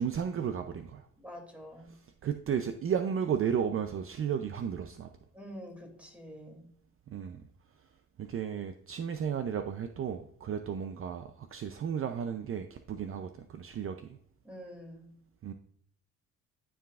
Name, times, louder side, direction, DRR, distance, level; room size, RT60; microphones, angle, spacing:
voice 1, 0.0-1.1 2.2-5.1 7.1-7.4 8.2-14.2 15.4-15.5, right 7 dB, 45° right, 7 dB, 0.5 m, -33 dB
voice 2, 1.2-2.0 5.3-6.7 14.4-15.1, equal, 5° right, 1 dB, 2.6 m, -47 dB
12.5 x 4.8 x 2.4 m, 0.63 s
cardioid pair, 90°, 30 cm